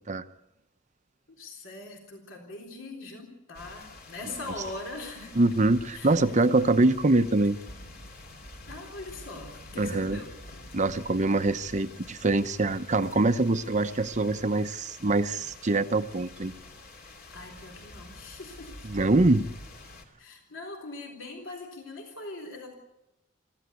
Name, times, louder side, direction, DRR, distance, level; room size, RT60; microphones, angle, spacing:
voice 1, 1.3-5.6 5.9-6.3 8.7-10.3 17.3-18.9 20.2-22.7, left 2 dB, 65° left, 2 dB, 3.7 m, -41 dB
sound 1, 3.5-20.1, left 2 dB, 50° left, 2.9 m, -47 dB
voice 2, 5.4-7.6 9.8-10.2 10.7-16.5 18.9-19.4, right 2 dB, 35° right, 11 dB, 0.8 m, -24 dB
25.0 x 15.0 x 8.3 m, 0.93 s
head